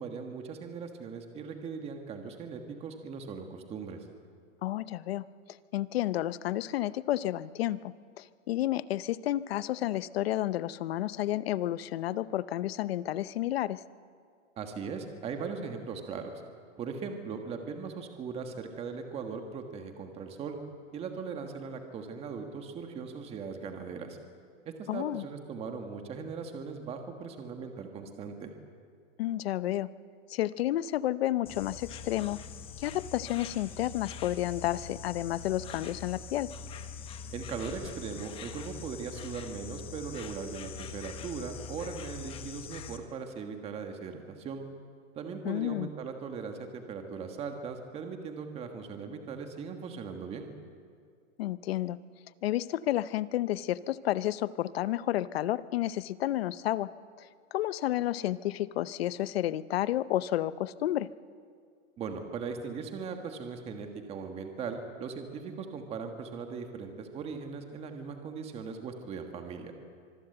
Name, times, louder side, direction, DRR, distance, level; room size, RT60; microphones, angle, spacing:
voice 1, 0.0-4.0 14.6-16.4 16.8-20.6 20.9-24.2 24.6-28.5 37.3-44.6 45.1-50.5 62.0-69.7, right 5 dB, 15° right, 5 dB, 1.5 m, -39 dB
voice 2, 4.6-5.2 5.7-13.8 24.9-25.3 29.2-29.9 30.3-32.4 32.8-36.5 45.4-45.9 51.4-52.0 52.4-56.9 57.2-61.1, left 14 dB, 50° left, 17 dB, 0.7 m, -31 dB
Insect, 31.5-43.0, left 6 dB, 15° left, 0.9 m, -43 dB
25.0 x 20.5 x 7.9 m, 2.1 s
supercardioid pair, 165°, 39 cm